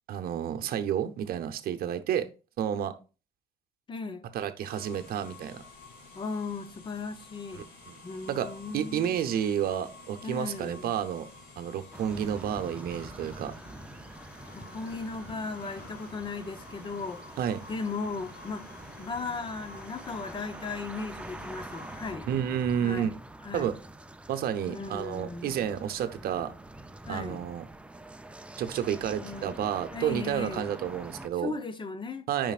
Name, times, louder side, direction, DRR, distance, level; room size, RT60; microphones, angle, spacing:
voice 1, 0.1-2.3 2.6-2.9 4.3-5.6 7.9-8.0 8.3-8.5 8.7-11.3 11.6-13.6 17.4-17.6 22.3-23.2 23.5-23.7 24.3-26.5 27.1-27.6 28.6-31.5 32.3-32.5, right 9 dB, 65° right, 0.8 m, -30 dB
voice 2, 3.9-4.2 6.1-7.7 8.0-9.2 10.2-10.9 14.5-17.2 17.7-18.7 19.0-22.3 22.8-23.1 23.4-23.7 24.7-25.7 27.0-27.5 29.2-29.6 29.9-30.7 31.4-32.3, left 4 dB, 30° left, 0.8 m, -37 dB
sound 1, 4.6-22.1, left 3 dB, 65° left, 2.8 m, -50 dB
sound 2, 11.9-31.3, right 1 dB, 5° right, 0.5 m, -45 dB
8.9 x 5.2 x 2.4 m
cardioid pair, 110°, 17 cm